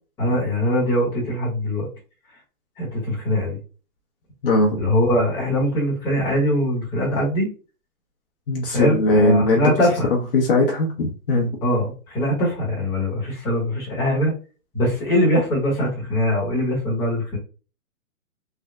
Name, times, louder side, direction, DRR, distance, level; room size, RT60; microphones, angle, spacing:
voice 1, 0.2-1.9 2.8-3.6 4.8-7.5 8.7-10.1 11.6-14.3 14.7-17.4, equal, 10° left, -6 dB, 0.9 m, -22 dB
voice 2, 4.4-4.8 8.5-9.7 10.1-11.5, left 2 dB, 40° left, 0 dB, 0.7 m, -19 dB
3.3 x 2.1 x 3.5 m, 0.35 s
hypercardioid pair, 155°, 43 cm